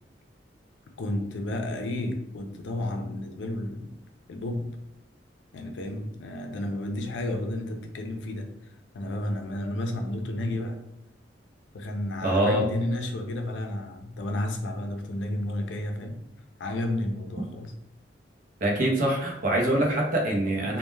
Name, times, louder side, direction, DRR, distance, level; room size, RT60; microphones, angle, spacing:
voice 1, 1.0-3.9 4.3-4.7 5.5-8.5 8.9-10.8 11.7-16.2 16.6-17.7, left 1 dB, 85° left, 4 dB, 0.4 m, -31 dB
voice 2, 12.2-12.6 18.6-20.8, right 1 dB, 45° right, -1 dB, 0.6 m, -24 dB
2.1 x 2.1 x 3.1 m, 0.83 s
head